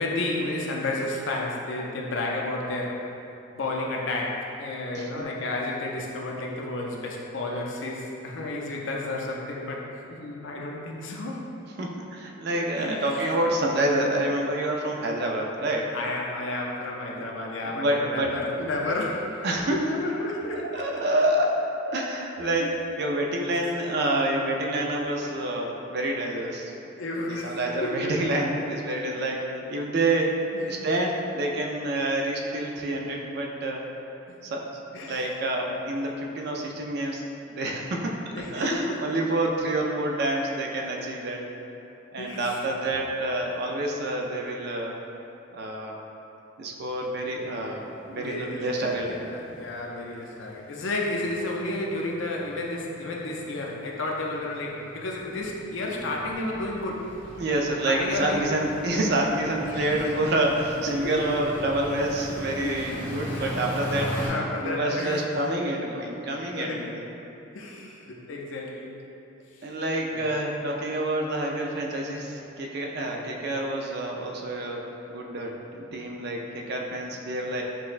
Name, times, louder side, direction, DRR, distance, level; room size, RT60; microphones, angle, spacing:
voice 1, 0.0-3.0 3.5-11.4 12.8-13.3 15.9-20.7 20.9-21.0 22.6-22.7 27.0-28.1 29.1-29.2 30.5-31.0 34.9-35.3 35.7-35.8 38.3-39.0 42.2-42.6 48.1-57.1 57.8-58.6 59.6-60.3 60.9-61.1 62.6-63.0 63.3-63.4 64.2-65.5 66.5-66.9 67.5-69.1 70.1-70.3, left 2 dB, 70° left, -1 dB, 0.5 m, -32 dB
voice 2, 4.9-5.3 11.8-15.9 17.6-18.3 19.4-19.8 20.7-21.6 21.9-22.7 23.0-26.7 27.3-29.4 29.7-33.8 34.4-37.2 37.6-38.2 38.5-41.4 42.1-45.0 45.5-45.9 46.6-49.6 57.3-64.2 64.6-67.1 69.6-77.6, right 1 dB, 50° right, 0 dB, 0.4 m, -28 dB
sound 1, 47.2-47.3 47.5-47.7 48.1-48.2 48.4-64.3, equal, 5° left, 0.7 m, -39 dB
5.9 x 2.1 x 2.4 m, 2.9 s
head